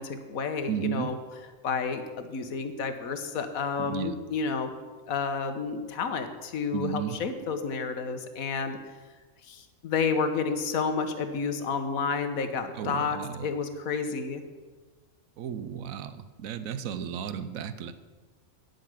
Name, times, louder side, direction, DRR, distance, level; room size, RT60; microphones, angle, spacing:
voice 1, 0.0-4.7 5.1-8.8 9.4-14.4, left 5 dB, 80° left, 8 dB, 1.4 m, -30 dB
voice 2, 0.7-1.1 3.8-4.1 6.7-7.1 12.8-13.0 15.4-16.1 16.4-17.9, right 8 dB, 75° right, 12 dB, 1.1 m, -33 dB
9.4 x 7.8 x 7.5 m, 1.4 s
omnidirectional pair, 1.5 m